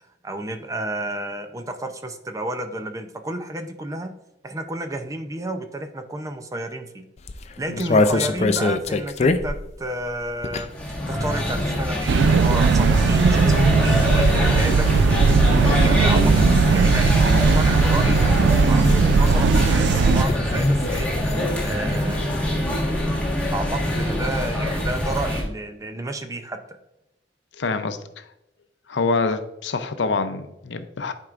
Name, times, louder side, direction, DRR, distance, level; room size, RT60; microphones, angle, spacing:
voice 1, 0.2-4.1 4.4-7.0 7.6-10.7 11.1-14.9 15.6-18.4 18.7-21.1 21.6-22.6 23.5-26.6, right 1 dB, 20° right, 7 dB, 0.5 m, -31 dB
sound 1, 7.2-10.9 11.2-22.1 22.4-22.5 22.7-23.0, left 3 dB, 35° left, 0.4 m, -28 dB
sound 2, 10.7-25.4, left 1 dB, 5° left, 1.5 m, -24 dB
sound 3, 12.1-20.2, right 4 dB, 75° right, 0.3 m, -18 dB
voice 2, 27.5-28.2 28.9-31.1, left 4 dB, 90° left, 10 dB, 0.6 m, -26 dB
10.5 x 4.5 x 2.5 m, 0.89 s
head